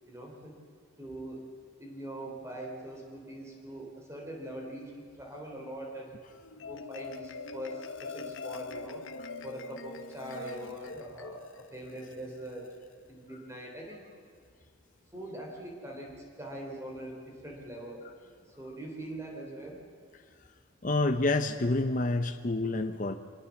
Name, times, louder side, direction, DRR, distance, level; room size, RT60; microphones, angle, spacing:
voice 1, 0.1-0.5 1.0-1.4 1.8-6.1 6.6-9.0 9.4-12.8 13.1-14.0 15.1-18.1 18.5-19.8, right 1 dB, 15° right, -1 dB, 3.5 m, -42 dB
Marimba xylophone, 6.3-12.9, left 4 dB, 65° left, 1.2 m, -43 dB
voice 2, 20.8-23.1, left 2 dB, 40° left, 7 dB, 0.8 m, -28 dB
24.5 x 21.5 x 7.2 m, 2.3 s
head